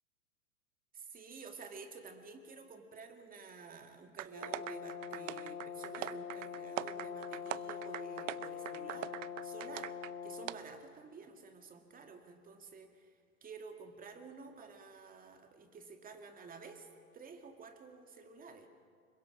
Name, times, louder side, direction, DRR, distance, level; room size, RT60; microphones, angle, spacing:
voice 1, 0.9-9.9 10.2-13.1 13.4-16.9 17.1-18.7, right 4 dB, 20° right, 6 dB, 2.2 m, -51 dB
sound 1, 4.2-10.1 10.5-10.6, right 16 dB, 60° right, 0.7 m, -42 dB
Brass instrument, 4.3-10.5, left 8 dB, 30° left, 3.3 m, -44 dB
25.5 x 22.5 x 6.1 m, 2.1 s
hypercardioid pair, 120°, 44 cm